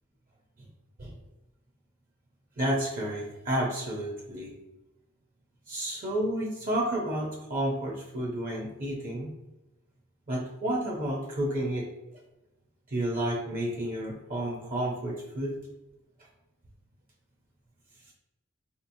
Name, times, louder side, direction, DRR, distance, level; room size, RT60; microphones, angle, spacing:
voice 1, 2.6-4.5 5.7-9.3 10.3-11.9 12.9-15.6, right 1 dB, 40° right, -1 dB, 0.6 m, -31 dB
4.0 x 2.8 x 2.6 m, 0.99 s
head